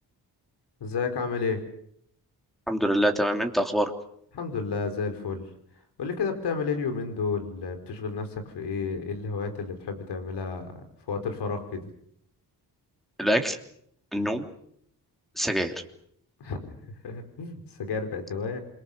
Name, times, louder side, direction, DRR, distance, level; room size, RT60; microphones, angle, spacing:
voice 1, 0.8-1.6 4.3-5.5 6.0-10.7 11.1-11.8 16.4-16.6 17.0-18.6, left 5 dB, 85° left, 7 dB, 4.6 m, -31 dB
voice 2, 2.7-3.9 13.2-13.6 14.1-14.4 15.4-15.7, equal, ahead, 5 dB, 3.0 m, -25 dB
28.5 x 23.5 x 6.7 m, 0.69 s
wide cardioid pair, 130°, 40 cm